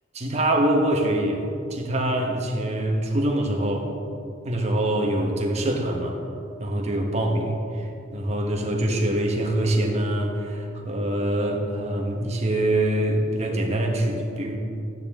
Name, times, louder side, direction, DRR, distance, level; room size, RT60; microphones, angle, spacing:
voice 1, 0.1-3.9 4.4-6.2 6.6-14.6, right 1 dB, 35° right, 1 dB, 1.4 m, -24 dB
14.5 x 9.8 x 3.7 m, 2.5 s
head